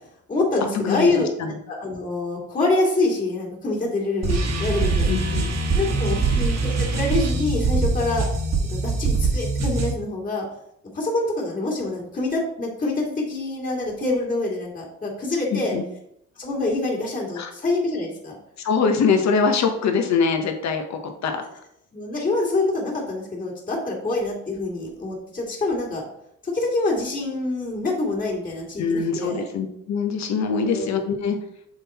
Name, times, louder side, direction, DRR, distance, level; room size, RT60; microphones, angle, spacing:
voice 1, 0.3-1.3 1.7-5.2 5.7-8.3 8.7-10.5 10.9-15.8 16.4-18.4 21.9-26.0 26.4-29.4 30.6-30.9, left 2 dB, 25° left, -2 dB, 2.3 m, -26 dB
voice 2, 0.9-1.5 5.1-5.5 15.5-15.8 17.4-17.5 18.6-21.4 28.8-31.4, left 5 dB, 65° left, 5 dB, 1.1 m, -23 dB
sound 1, 4.2-9.9, right 3 dB, 60° right, 1.3 m, -23 dB
6.5 x 3.9 x 4.2 m, 0.74 s
cardioid pair, 90°, 30 cm